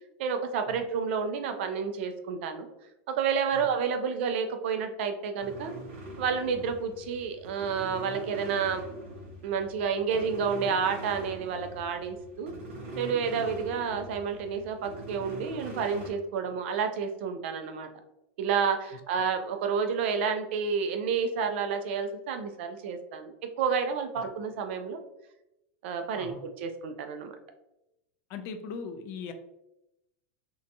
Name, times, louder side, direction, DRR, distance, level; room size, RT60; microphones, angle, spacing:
voice 1, 0.2-2.7 3.1-5.7 6.2-8.9 9.4-12.5 13.0-17.9 18.4-25.0 25.8-27.3, right 6 dB, 65° right, 6 dB, 0.4 m, -30 dB
sound 1, 5.4-16.1, right 1 dB, 90° right, 1.1 m, -43 dB
voice 2, 26.1-26.4 28.3-29.3, left 6 dB, 40° left, 7 dB, 0.3 m, -39 dB
2.7 x 2.2 x 2.5 m, 0.90 s
supercardioid pair, 155°, 7 cm